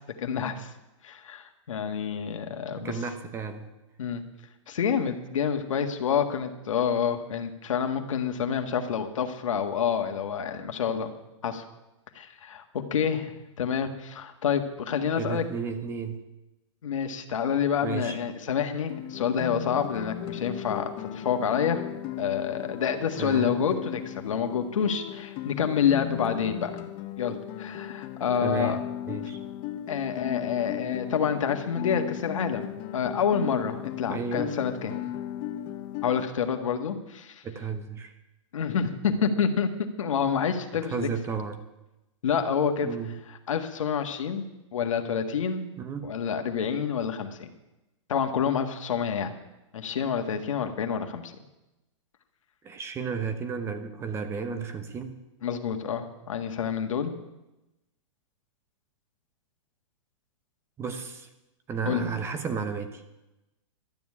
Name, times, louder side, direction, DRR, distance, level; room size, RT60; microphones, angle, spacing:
voice 1, 0.2-0.7 1.0-3.0 4.0-4.2 4.7-11.1 11.4-11.6 12.1-12.6 12.9-15.4 16.8-21.8 22.2-26.7 27.2-28.8 29.9-34.9 36.0-37.4 38.5-41.1 42.2-42.9 43.5-44.4 44.7-45.7 46.0-47.5 48.1-49.3 49.7-51.3 55.4-57.1 61.8-62.0, left 7 dB, 85° left, 6 dB, 1.7 m, -28 dB
voice 2, 2.8-3.7 15.2-16.2 17.8-18.2 23.2-23.6 28.4-29.4 34.1-34.6 37.4-38.1 40.8-41.6 42.8-43.1 45.8-46.1 52.6-55.2 60.8-61.3 61.7-63.0, right 5 dB, 15° right, 8 dB, 1.0 m, -33 dB
Guitar, 18.9-36.3, left 12 dB, 30° left, 0.8 m, -36 dB
12.0 x 7.2 x 9.8 m, 0.97 s
hypercardioid pair, 150°, 16 cm